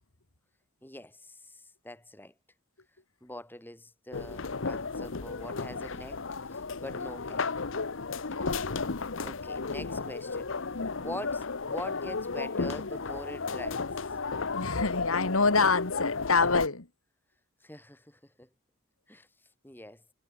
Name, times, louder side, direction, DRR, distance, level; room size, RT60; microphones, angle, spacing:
voice 1, 0.8-2.3 3.2-7.5 8.4-8.7 9.2-10.5 11.0-13.9 17.6-18.5 19.1-19.3 19.6-20.0, left 1 dB, 10° left, 2.8 m, -44 dB
sound 1, 4.1-16.7, left 4 dB, 60° left, 0.9 m, -33 dB
voice 2, 14.5-16.9, left 4 dB, 75° left, 2.5 m, -26 dB
head